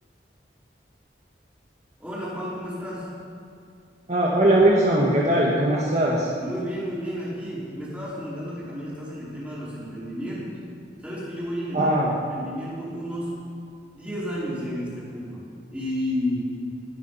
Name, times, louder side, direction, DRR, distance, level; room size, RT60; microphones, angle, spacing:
voice 1, 2.0-3.1 6.4-10.6 11.0-11.9 12.3-13.5 13.9-15.5 15.7-16.5, equal, 10° right, -8 dB, 4.6 m, -32 dB
voice 2, 4.1-6.3 11.7-12.2, right 1 dB, 40° right, -4 dB, 1.7 m, -20 dB
21.0 x 9.5 x 5.7 m, 2.5 s
head